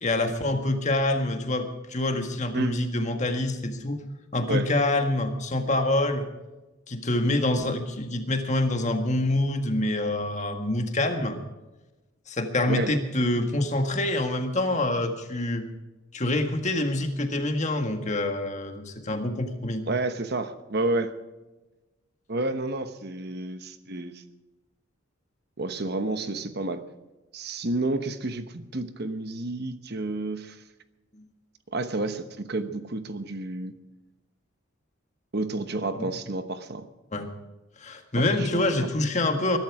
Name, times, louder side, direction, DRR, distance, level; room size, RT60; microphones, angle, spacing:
voice 1, 0.0-4.0 4.3-6.3 6.9-11.4 12.3-15.6 16.1-19.8 31.1-31.3 36.0-36.1 37.1-37.3 37.8-39.6, left 1 dB, 35° left, 5 dB, 1.7 m, -26 dB
voice 2, 12.7-13.0 19.9-21.1 22.3-24.1 25.6-26.8 27.3-30.6 31.7-33.7 35.3-36.9 38.2-38.9, right 2 dB, 50° right, 9 dB, 1.1 m, -30 dB
21.5 x 12.0 x 4.9 m, 1.1 s
head